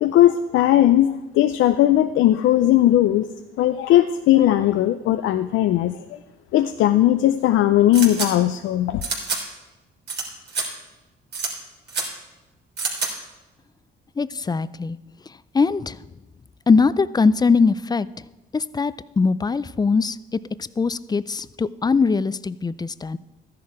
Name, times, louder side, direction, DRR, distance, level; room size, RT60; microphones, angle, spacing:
voice 1, 0.0-3.3 3.6-6.0 6.5-9.0, left 13 dB, 80° left, 10 dB, 0.5 m, -18 dB
sound 1, 7.9-8.3 9.0-9.4 10.1-10.2 10.5-10.6 11.3-11.5 11.9-12.0 12.8-13.1, right 4 dB, 60° right, 3.3 m, -26 dB
voice 2, 14.2-15.0 15.5-16.0 16.7-18.1 18.5-23.2, left 4 dB, 20° left, 17 dB, 0.4 m, -21 dB
13.0 x 10.5 x 4.8 m, 1.1 s
cardioid pair, 90°, 20 cm